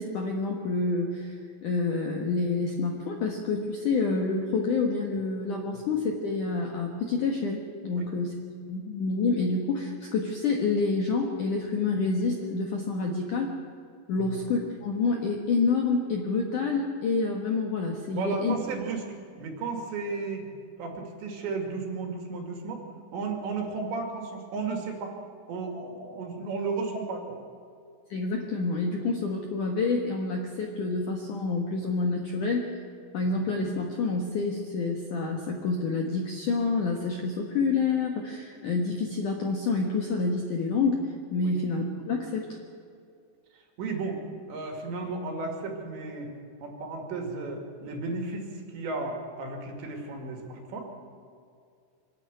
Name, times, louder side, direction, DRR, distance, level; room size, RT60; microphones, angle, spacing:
voice 1, 0.0-1.3 1.6-8.4 8.7-13.5 14.1-18.5 28.1-32.7 33.1-42.6, left 4 dB, 65° left, 1 dB, 2.0 m, -28 dB
voice 2, 18.1-19.1 19.4-20.5 20.8-25.2 25.5-27.4 33.2-33.3 41.4-41.5 43.5-44.2 44.5-46.3 46.6-50.9, right 3 dB, 65° right, 2 dB, 4.4 m, -34 dB
25.0 x 12.0 x 9.6 m, 2.4 s
omnidirectional pair, 5.8 m